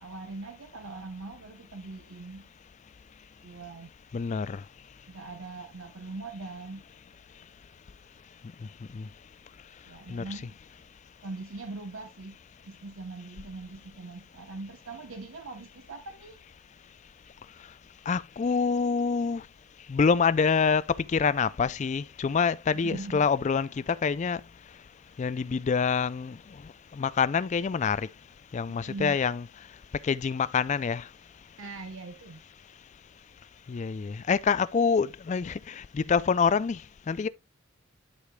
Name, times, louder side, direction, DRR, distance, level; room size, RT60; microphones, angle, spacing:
voice 1, 0.0-2.5 3.4-3.9 5.1-6.8 9.8-10.6 11.2-12.4 12.6-16.4 22.7-23.3 28.7-29.2 31.6-32.4, right 3 dB, 75° right, 0.9 m, -41 dB
voice 2, 4.1-5.1 7.3-7.5 8.2-10.4 16.8-19.5 19.8-31.6 32.6-37.3, left 5 dB, 35° left, 0.3 m, -28 dB
11.5 x 4.9 x 2.2 m
head